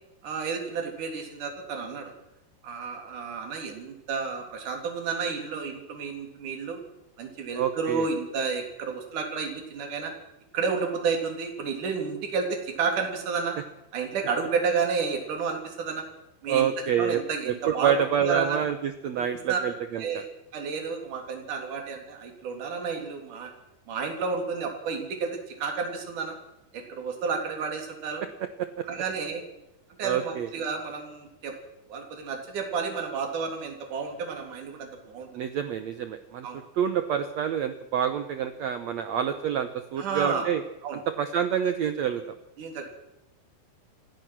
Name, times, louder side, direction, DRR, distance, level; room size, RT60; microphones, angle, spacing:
voice 1, 0.2-2.1 2.6-6.8 7.2-10.1 10.5-13.6 13.9-16.0 16.4-16.7 17.0-18.6 19.2-19.6 20.0-20.3 20.5-23.5 23.9-26.4 26.7-28.2 28.9-29.4 30.0-31.5 31.9-35.4 36.4-36.6 40.0-40.5 40.8-41.0 42.6-42.9, right 5 dB, 55° right, 2 dB, 4.5 m, -31 dB
voice 2, 7.6-8.1 16.5-17.2 17.4-20.2 28.6-28.8 30.0-30.5 35.3-36.5 36.8-40.6 41.2-42.2, right 8 dB, 80° right, 9 dB, 1.5 m, -27 dB
28.5 x 16.0 x 6.2 m, 0.89 s
omnidirectional pair, 4.6 m